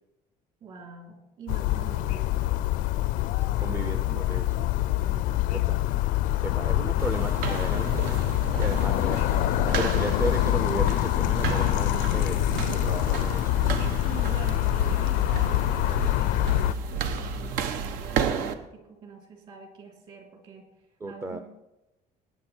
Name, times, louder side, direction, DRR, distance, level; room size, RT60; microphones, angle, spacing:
voice 1, 0.6-2.6 3.5-4.7 5.0-5.8 6.4-6.7 8.7-9.0 9.9-10.0 14.0-20.7 21.0-21.4, right 5 dB, 40° right, 2 dB, 3.2 m, -45 dB
sound 1, 1.5-16.7, left 16 dB, 65° left, 0.5 m, -25 dB
voice 2, 3.6-4.4 5.5-5.8 6.4-8.3 8.6-9.2 9.8-13.6 21.0-21.4, right 2 dB, 15° right, 8 dB, 0.6 m, -34 dB
sound 2, 7.0-18.5, right 5 dB, 80° right, 1.1 m, -32 dB
19.5 x 9.4 x 4.4 m, 0.98 s
cardioid pair, 175°, 15 cm